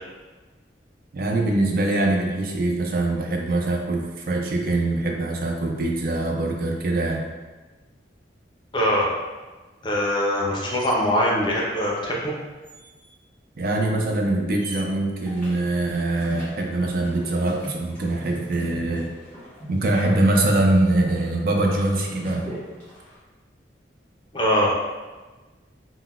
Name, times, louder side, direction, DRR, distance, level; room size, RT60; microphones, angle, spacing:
voice 1, 1.1-7.3 13.6-19.1 19.7-22.5, right 2 dB, 50° right, 1 dB, 0.4 m, -23 dB
voice 2, 8.7-9.1 9.8-12.3 24.3-24.7, equal, 25° left, -3 dB, 0.5 m, -22 dB
sound 1, 10.6-11.0 12.6-13.2 14.6-14.8, right 2 dB, 85° right, 0.8 m, -41 dB
sound 2, 15.3-23.2, equal, 10° left, 1.2 m, -41 dB
3.7 x 2.1 x 2.3 m, 1.3 s
head